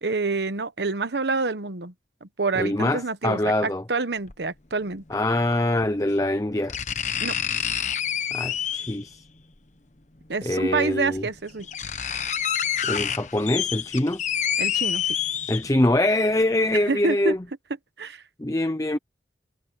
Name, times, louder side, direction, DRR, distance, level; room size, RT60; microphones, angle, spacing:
voice 1, 0.0-1.9 2.2-5.0 7.2-7.3 10.3-11.7 14.6-15.2 16.7-17.3 18.0-18.2, right 3 dB, 80° right, 1.1 m, -27 dB
voice 2, 2.6-3.8 5.1-6.8 8.3-9.2 10.4-11.2 12.8-14.2 15.5-17.4 18.4-19.0, left 1 dB, 20° left, 0.6 m, -24 dB
sound 1, 4.3-4.4 5.8-5.9 6.7-9.1 10.4-10.5 11.2-11.3 11.5-15.9 16.4-16.5, left 9 dB, 40° left, 1.1 m, -27 dB
head